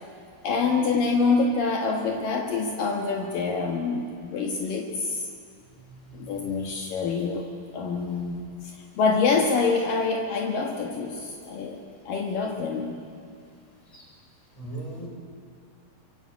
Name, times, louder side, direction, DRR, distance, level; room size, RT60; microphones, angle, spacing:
voice 1, 0.4-5.3 6.1-7.5 7.7-8.4 8.6-13.1, left 4 dB, 70° left, 1 dB, 3.2 m, -26 dB
voice 2, 14.6-15.1, right 2 dB, 10° left, -1 dB, 5.5 m, -37 dB
25.5 x 24.0 x 8.5 m, 2.3 s
omnidirectional pair, 4.3 m